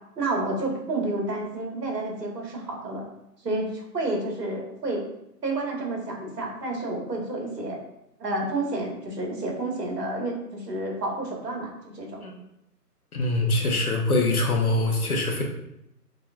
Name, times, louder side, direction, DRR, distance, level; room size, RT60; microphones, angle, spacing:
voice 1, 0.2-3.0 3.4-5.1 5.4-7.8 8.2-12.2, right 2 dB, 75° right, -1 dB, 1.7 m, -30 dB
voice 2, 13.1-15.4, left 2 dB, 60° left, 1 dB, 1.1 m, -23 dB
5.0 x 4.0 x 2.4 m, 0.83 s
hypercardioid pair, 180°, 49 cm